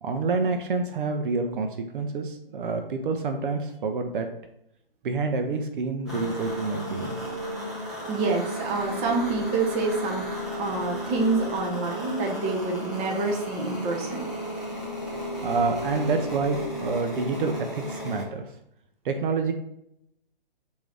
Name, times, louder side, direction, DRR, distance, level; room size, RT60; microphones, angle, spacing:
voice 1, 0.0-1.7 1.9-4.3 5.0-7.2 15.4-18.4 19.0-19.5, right 4 dB, 60° right, 6 dB, 0.6 m, -27 dB
sound 1, 6.1-18.2, left 1 dB, ahead, 0.3 m, -34 dB
voice 2, 8.1-10.2 10.5-14.2, right 3 dB, 20° right, 0 dB, 0.7 m, -27 dB
4.5 x 2.7 x 3.3 m, 0.77 s
hypercardioid pair, 135°, 29 cm